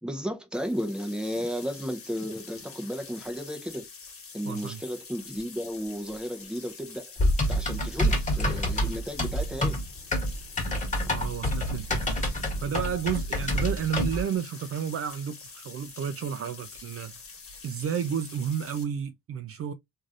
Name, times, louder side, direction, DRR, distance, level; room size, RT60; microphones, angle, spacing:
voice 1, 0.0-3.9 4.3-7.1 7.5-9.8, equal, 5° right, 0.7 m, -34 dB
sound 1, 0.5-18.8, left 5 dB, 45° left, 1.3 m, -46 dB
voice 2, 4.4-4.8 11.1-12.2 12.6-17.1 17.6-19.7, right 8 dB, 50° right, 0.4 m, -31 dB
Typing, 7.2-14.2, equal, 25° left, 1.4 m, -27 dB
3.1 x 2.6 x 2.4 m
cardioid pair, 90°, 30 cm